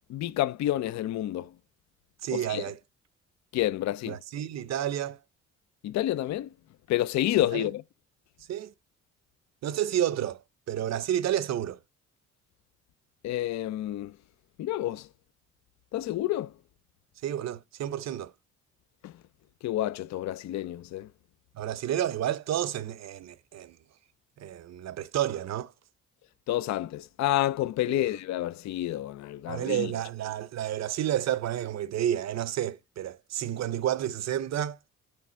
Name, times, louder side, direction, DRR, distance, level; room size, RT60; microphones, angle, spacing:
voice 1, 0.1-1.5 2.3-2.6 3.5-4.2 5.8-6.5 6.9-7.8 13.2-14.1 14.6-15.1 15.9-16.5 19.0-19.1 19.6-21.1 26.5-29.9, left 14 dB, 65° left, 0.5 m, -29 dB
voice 2, 2.2-2.8 4.1-5.2 7.5-7.7 8.5-8.7 9.6-10.4 10.7-11.8 17.2-18.3 21.5-23.8 24.4-25.7 27.9-28.1 29.5-34.8, right 11 dB, 60° right, 0.7 m, -30 dB
9.7 x 3.5 x 4.3 m
cardioid pair, 90°, 30 cm